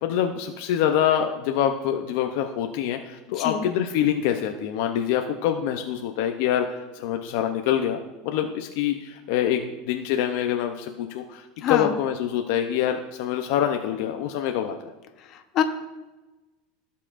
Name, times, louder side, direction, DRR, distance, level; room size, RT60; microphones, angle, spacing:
voice 1, 0.0-14.8, left 10 dB, 65° left, 5 dB, 0.6 m, -25 dB
voice 2, 11.6-11.9 15.3-15.6, left 9 dB, 40° left, 6 dB, 0.9 m, -25 dB
16.0 x 5.6 x 2.5 m, 1.1 s
supercardioid pair, 150°, 0 cm